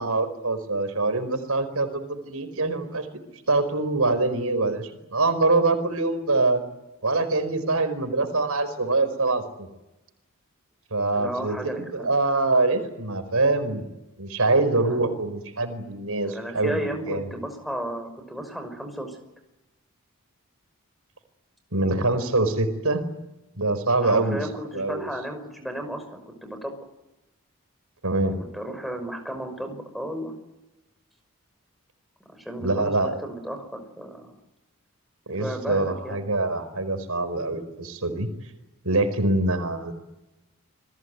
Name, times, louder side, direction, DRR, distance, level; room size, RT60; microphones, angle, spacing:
voice 1, 0.0-3.1 3.5-6.6 7.0-9.7 10.9-13.9 14.2-16.8 17.1-17.2 21.7-23.0 23.6-24.4 24.7-25.1 28.0-28.4 32.6-33.2 35.3-38.3 38.8-39.9, right 2 dB, 80° right, 9 dB, 4.8 m, -24 dB
voice 2, 11.1-12.1 14.8-15.1 16.2-19.2 24.0-26.8 28.5-30.3 32.3-34.3 35.3-36.2, right 1 dB, ahead, 4 dB, 5.7 m, -34 dB
29.0 x 20.5 x 9.6 m, 0.98 s
head